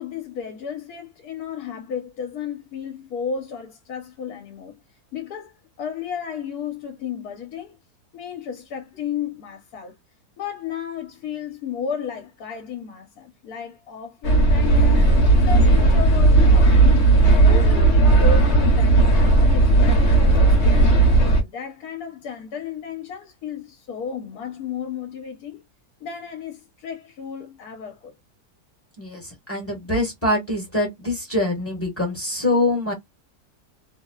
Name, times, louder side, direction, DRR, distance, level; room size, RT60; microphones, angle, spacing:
voice 1, 0.0-4.8 5.1-7.8 8.1-10.0 10.4-17.1 17.5-20.9 21.3-25.6 26.0-28.1, left 7 dB, 70° left, 1.1 m, -33 dB
sound 1, 14.2-21.4, right 2 dB, 50° left, 1.0 m, -15 dB
voice 2, 29.0-32.9, left 1 dB, 10° left, 1.0 m, -24 dB
3.0 x 2.0 x 2.2 m
omnidirectional pair, 1.7 m